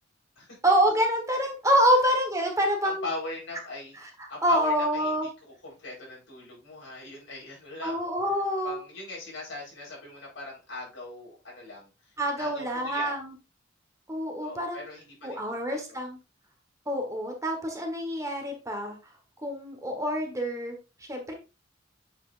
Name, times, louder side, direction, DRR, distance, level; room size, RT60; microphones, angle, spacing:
voice 1, 0.6-3.0 4.0-5.3 7.8-8.8 12.2-13.3 14.1-14.8 15.2-16.2 16.9-19.0 19.4-20.8 21.1-21.3, equal, 15° right, 3 dB, 1.4 m, -26 dB
voice 2, 2.8-4.0 4.3-5.3 5.6-8.1 8.6-11.9 12.4-13.1 14.4-16.0, left 2 dB, 90° left, -3 dB, 4.4 m, -40 dB
7.7 x 5.6 x 2.6 m, 0.29 s
head